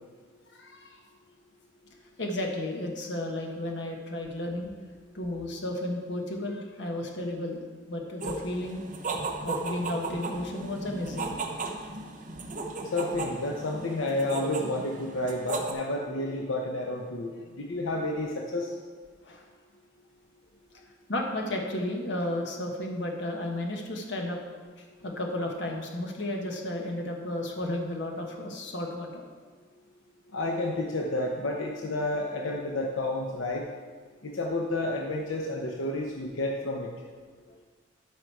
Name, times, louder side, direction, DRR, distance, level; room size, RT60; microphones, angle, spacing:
voice 1, 0.5-1.0 2.2-4.7 5.1-7.6 7.9-8.8 9.4-11.3 19.2-19.4 20.7-20.8 21.1-24.4 24.8-29.2 37.5-37.6, left 1 dB, 60° left, 1 dB, 1.3 m, -33 dB
sound 1, 8.2-15.7, right 3 dB, 40° right, 0.8 m, -35 dB
voice 2, 12.9-18.7 30.3-33.6 34.2-36.9, left 2 dB, 85° left, 0 dB, 0.8 m, -30 dB
12.0 x 5.1 x 4.6 m, 1.5 s
head